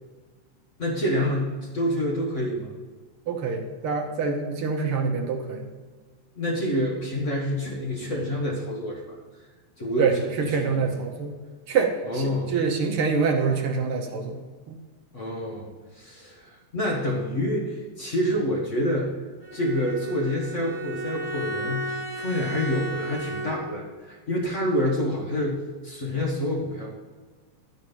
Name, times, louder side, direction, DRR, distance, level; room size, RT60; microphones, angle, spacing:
voice 1, 0.8-2.7 6.3-9.0 9.8-10.9 12.0-12.5 15.1-15.7 15.9-19.2 19.5-26.9, equal, 85° left, -3 dB, 0.6 m, -27 dB
voice 2, 3.3-5.7 10.0-11.4 11.7-14.4 14.7-14.8, right 5 dB, 70° right, 1 dB, 1.3 m, -26 dB
Bowed string instrument, 19.4-23.9, right 1 dB, 20° left, 0.3 m, -34 dB
12.5 x 4.7 x 6.8 m, 1.4 s
omnidirectional pair, 3.8 m